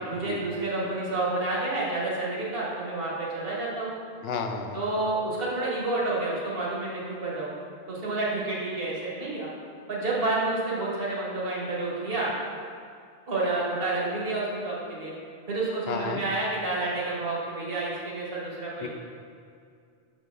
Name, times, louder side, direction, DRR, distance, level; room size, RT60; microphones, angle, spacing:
voice 1, 0.1-3.9 4.7-7.5 7.9-9.5 9.9-12.3 13.3-15.1 15.5-18.9, right 2 dB, 60° right, -5 dB, 1.6 m, -29 dB
voice 2, 4.2-5.0 15.9-16.2 18.8-18.9, left 5 dB, 70° left, 5 dB, 0.8 m, -33 dB
6.7 x 4.4 x 3.6 m, 2.3 s
omnidirectional pair, 1.1 m